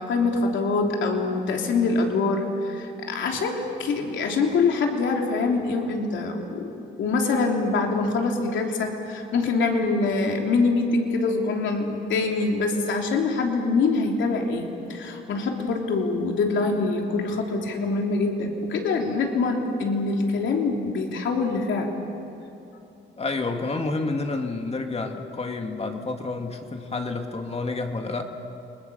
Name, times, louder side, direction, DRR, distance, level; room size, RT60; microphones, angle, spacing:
voice 1, 0.0-6.7 7.0-21.9, left 3 dB, 70° left, 1 dB, 3.4 m, -24 dB
voice 2, 23.2-28.2, left 3 dB, 30° left, 4 dB, 2.4 m, -29 dB
29.5 x 20.5 x 7.0 m, 2.8 s
cardioid pair, 90°, 20 cm